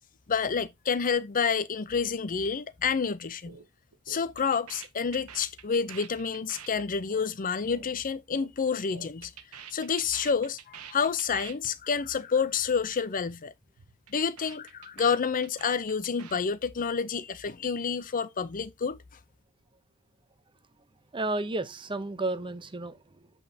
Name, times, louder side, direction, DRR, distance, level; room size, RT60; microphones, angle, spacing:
voice 1, 0.3-3.6 4.1-9.3 9.7-13.5 14.1-19.0, left 6 dB, 40° left, 0.6 m, -29 dB
sound 1, 3.5-3.7 3.9-8.5 8.8-11.7 12.0-12.2 12.4-12.8 13.0-13.4 13.6-16.4, right 7 dB, 90° right, 1.1 m, -47 dB
voice 2, 21.1-23.3, right 2 dB, 20° right, 0.7 m, -32 dB
8.1 x 5.4 x 2.7 m
head